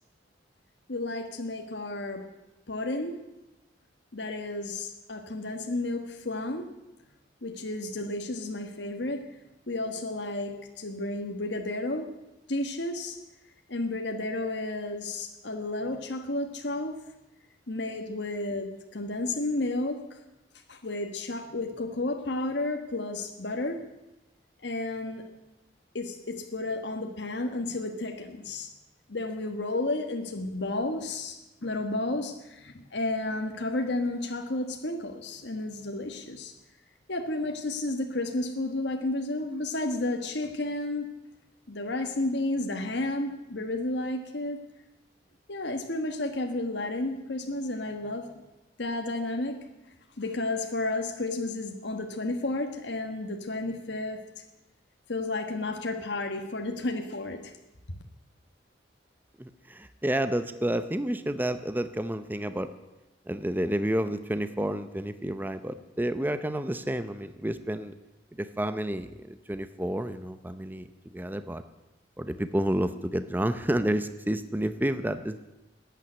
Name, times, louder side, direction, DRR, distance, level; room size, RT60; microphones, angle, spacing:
voice 1, 0.9-2.2 2.7-3.2 4.1-6.7 7.4-9.2 9.7-12.1 12.5-13.2 13.7-17.0 17.7-20.2 20.7-23.8 24.6-25.2 25.9-28.7 29.1-36.5 37.1-41.1 41.7-44.6 45.5-48.3 48.8-49.6 50.2-54.2 55.1-57.5, left 2 dB, 65° left, 4 dB, 1.4 m, -32 dB
voice 2, 59.4-62.7 63.3-67.9 68.4-70.9 71.1-71.6 72.2-75.4, right 1 dB, 10° right, 11 dB, 0.6 m, -30 dB
14.0 x 9.3 x 9.8 m, 0.99 s
head